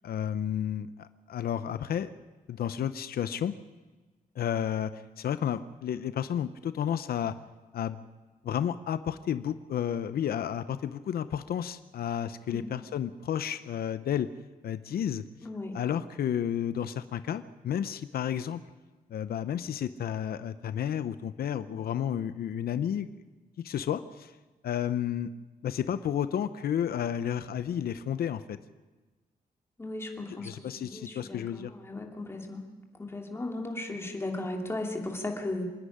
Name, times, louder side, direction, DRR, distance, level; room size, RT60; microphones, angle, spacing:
voice 1, 0.0-2.1 2.5-3.6 4.4-7.3 7.7-8.0 8.4-14.3 14.6-15.2 15.7-18.6 19.1-23.1 23.6-24.3 24.6-25.3 25.6-28.6 30.3-31.7, left 9 dB, 90° left, 13 dB, 0.6 m, -31 dB
voice 2, 15.4-15.8 29.8-30.5 30.7-32.6 33.0-35.6, left 2 dB, 15° left, 1 dB, 2.6 m, -36 dB
26.0 x 10.0 x 10.0 m, 1.3 s
wide cardioid pair, 140°, 15 cm